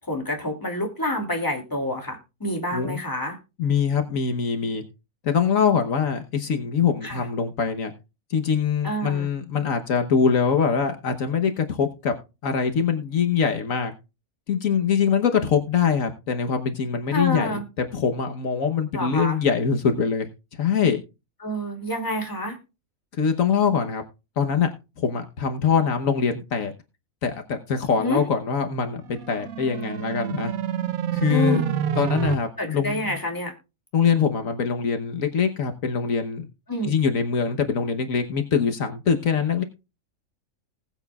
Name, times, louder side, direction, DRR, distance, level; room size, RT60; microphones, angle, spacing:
voice 1, 0.1-3.4 7.0-7.3 8.8-9.3 17.1-17.7 18.9-19.4 21.4-22.6 28.0-28.2 31.3-31.7 32.6-33.5 36.7-36.9, left 1 dB, 15° left, 2 dB, 2.6 m, -28 dB
voice 2, 3.6-4.8 5.2-7.9 8.3-12.1 12.4-13.9 14.5-20.3 20.6-21.0 23.2-24.0 24.4-24.7 25.0-26.7 27.2-29.0 29.3-30.5 31.1-31.6 32.0-33.2 33.9-36.4 36.8-39.6, left 6 dB, 75° left, 6 dB, 1.5 m, -23 dB
sound 1, 29.0-32.3, right 9 dB, 85° right, 1.3 m, -28 dB
19.5 x 8.0 x 2.3 m, 0.28 s
omnidirectional pair, 1.4 m